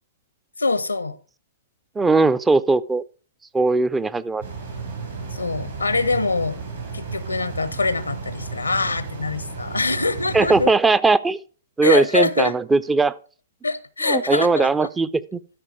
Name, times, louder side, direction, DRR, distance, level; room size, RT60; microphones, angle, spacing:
voice 1, 0.6-1.2 5.3-6.6 6.9-10.7 11.8-12.6 13.6-14.9, left 3 dB, 85° left, 0.7 m, -24 dB
voice 2, 2.0-3.0 3.5-4.4 10.3-11.4 11.8-13.1 14.1-15.4, right 3 dB, 10° right, 0.4 m, -19 dB
sound 1, 4.4-10.7, right 4 dB, 65° right, 4.5 m, -33 dB
13.0 x 4.9 x 4.8 m
figure-of-eight pair, 110°, 0 cm